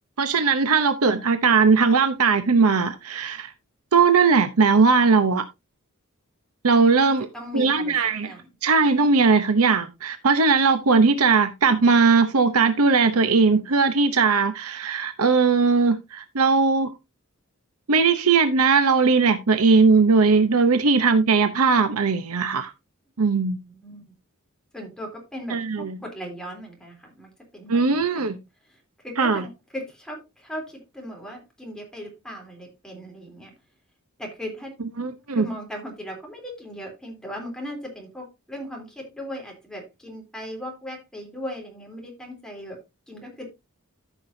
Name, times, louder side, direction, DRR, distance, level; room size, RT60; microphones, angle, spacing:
voice 1, 0.2-3.5 3.9-5.4 6.6-7.3 7.5-8.3 8.6-16.9 17.9-22.7 23.2-23.6 25.5-26.0 27.7-28.4 29.2-29.4 35.0-35.5, right 4 dB, 80° right, 0.8 m, -19 dB
voice 2, 6.9-8.5 23.3-24.1 24.7-33.5 34.2-34.7 35.3-43.5, equal, 5° left, 3.4 m, -38 dB
14.0 x 6.1 x 2.7 m
head